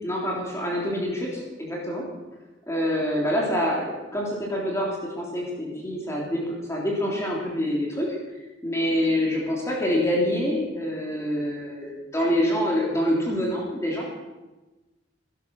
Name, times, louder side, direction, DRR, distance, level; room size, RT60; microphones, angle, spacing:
voice 1, 0.0-2.0 2.7-4.9 5.2-8.1 8.6-14.1, equal, 15° left, -3 dB, 3.3 m, -26 dB
17.5 x 11.5 x 6.4 m, 1.1 s
head